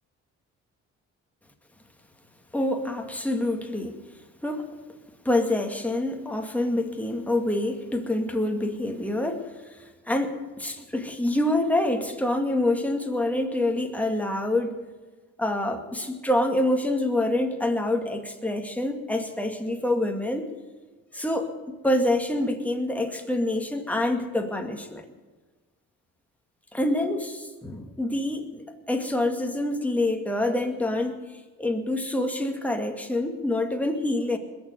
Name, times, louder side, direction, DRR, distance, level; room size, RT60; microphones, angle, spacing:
voice 1, 2.5-4.1 4.4-4.7 5.2-14.8 15.4-20.5 21.1-25.1 26.7-31.2 31.6-34.4, left 1 dB, 5° left, 3 dB, 2.2 m, -26 dB
21.0 x 7.2 x 9.4 m, 1.3 s
cardioid pair, 90°, 30 cm